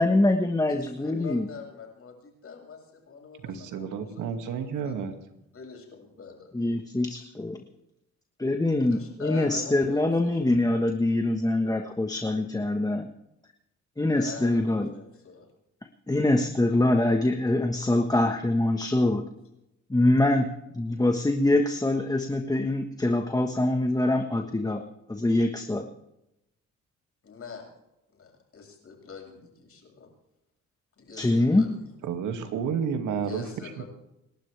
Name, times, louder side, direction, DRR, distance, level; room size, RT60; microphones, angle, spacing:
voice 1, 0.0-1.5 6.5-7.6 8.4-13.1 14.0-14.9 16.1-19.2 19.9-24.8 25.1-25.9 31.2-31.7, left 2 dB, 10° left, 5 dB, 1.4 m, -24 dB
voice 2, 0.7-5.0 5.5-6.6 8.8-10.4 14.2-15.5 27.2-27.6 28.1-30.1 31.0-31.9 33.2-33.8, left 5 dB, 50° left, 1 dB, 7.4 m, -44 dB
voice 3, 3.4-5.1 32.1-33.4 33.8-33.9, right 7 dB, 85° right, 6 dB, 2.3 m, -30 dB
29.0 x 12.0 x 3.4 m, 0.88 s
cardioid pair, 90°, 30 cm